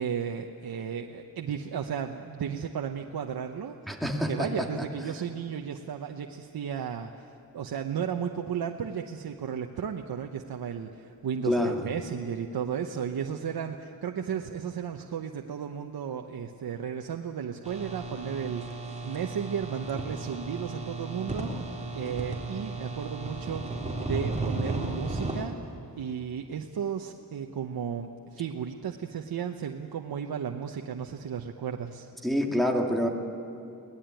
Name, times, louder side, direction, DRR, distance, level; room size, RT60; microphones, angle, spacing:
voice 1, 0.0-4.0 4.3-23.6 24.0-25.5 26.0-32.1, right 7 dB, 80° right, 4 dB, 1.0 m, -34 dB
voice 2, 3.9-4.8 11.4-11.9 32.2-33.1, equal, ahead, 2 dB, 2.6 m, -27 dB
sound 1, 17.6-25.4, right 2 dB, 20° right, 3.6 m, -34 dB
23.0 x 19.0 x 9.1 m, 2.7 s
wide cardioid pair, 110°, 36 cm